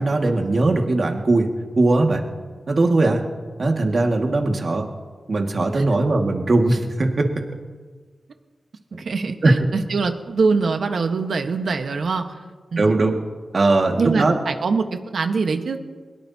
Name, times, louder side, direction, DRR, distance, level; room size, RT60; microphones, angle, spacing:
voice 1, 0.0-1.5 1.8-2.2 2.7-3.2 3.6-4.9 5.3-7.3 8.9-9.0 9.4-9.6 12.8-13.2 13.5-14.3, right 2 dB, 50° right, 2 dB, 2.0 m, -19 dB
voice 2, 9.0-9.4 9.7-12.2 12.7-12.9 14.0-15.8, right 4 dB, 70° right, 6 dB, 1.3 m, -23 dB
22.0 x 21.5 x 2.9 m, 1.5 s
wide cardioid pair, 115°, 0 cm